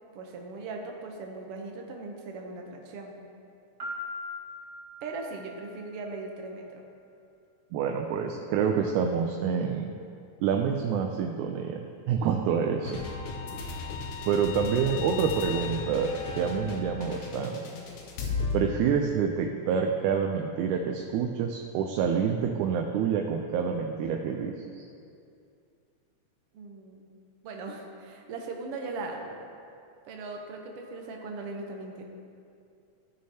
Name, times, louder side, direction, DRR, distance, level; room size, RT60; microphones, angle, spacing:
voice 1, 0.1-3.1 5.0-6.9 13.5-13.7 26.5-27.1 27.4-29.4 30.1-32.0, right 3 dB, 70° right, 2 dB, 1.5 m, -39 dB
Piano, 3.8-5.7, left 2 dB, 30° right, 1.9 m, -39 dB
voice 2, 7.7-9.9 10.4-13.0 14.3-16.1 16.4-17.6 18.5-24.8, right 7 dB, 90° right, 3 dB, 2.0 m, -27 dB
sound 1, 12.8-18.5, left 5 dB, 80° left, 2.1 m, -35 dB
14.5 x 6.3 x 2.8 m, 2.5 s
omnidirectional pair, 3.4 m